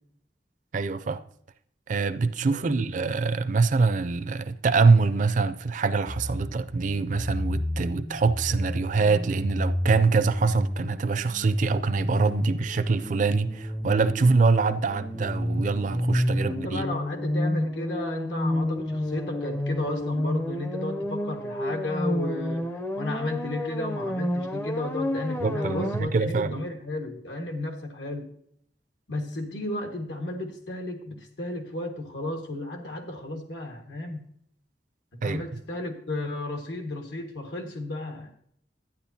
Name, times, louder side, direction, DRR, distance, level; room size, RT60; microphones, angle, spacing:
voice 1, 0.7-1.2 1.9-16.8 25.4-26.6 35.2-35.4, right 4 dB, 45° right, 0.4 m, -24 dB
voice 2, 2.5-2.9 16.3-28.3 29.1-34.2 35.2-38.3, left 2 dB, 90° left, 1.5 m, -33 dB
sound 1, 6.1-26.0, left 1 dB, 15° left, 0.4 m, -30 dB
12.0 x 9.4 x 2.7 m
head